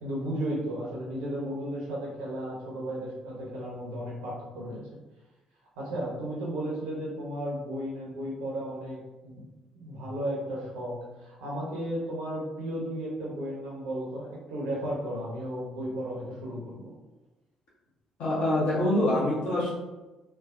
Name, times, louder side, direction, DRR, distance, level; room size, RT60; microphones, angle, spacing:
voice 1, 0.0-4.8 5.8-9.4 9.7-16.9, right 1 dB, 75° right, -4 dB, 0.8 m, -34 dB
voice 2, 18.2-19.7, left 1 dB, 60° left, -6 dB, 0.7 m, -25 dB
3.2 x 2.0 x 2.4 m, 1.1 s
figure-of-eight pair, 45°, 3 cm